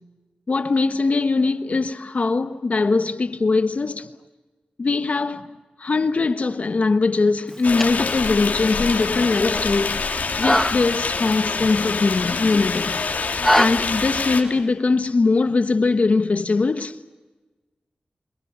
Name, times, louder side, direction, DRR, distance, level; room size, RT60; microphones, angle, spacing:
voice 1, 0.5-4.1 4.8-13.0 13.6-17.0, left 3 dB, 55° left, 1.2 m, -21 dB
sound 1, 7.5-13.7, equal, 5° left, 1.0 m, -26 dB
sound 2, 7.6-14.4, left 4 dB, 90° left, 3.0 m, -26 dB
27.0 x 22.5 x 7.5 m
wide cardioid pair, 95°, 3 cm